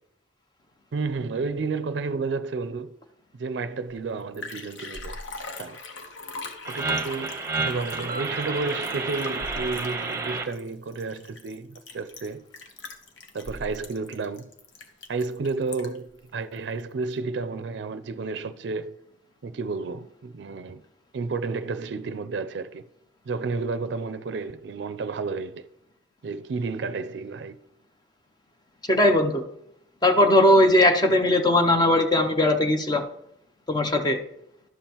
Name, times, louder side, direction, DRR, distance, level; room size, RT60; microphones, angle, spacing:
voice 1, 0.9-2.9 3.4-5.2 5.6-5.8 6.7-12.5 13.3-14.5 15.1-19.0 19.4-20.8 21.1-22.8 23.3-25.7 26.2-27.6, right 4 dB, 65° right, 0.4 m, -31 dB
Liquid, 3.9-4.0 4.2-16.1 16.6-16.7, left 2 dB, 80° left, 1.0 m, -40 dB
sound 1, 6.6-10.4, right 3 dB, 15° right, 0.8 m, -30 dB
voice 2, 28.9-29.4 30.0-33.0 33.7-34.2, left 1 dB, 20° left, 0.5 m, -19 dB
11.5 x 7.1 x 2.9 m
head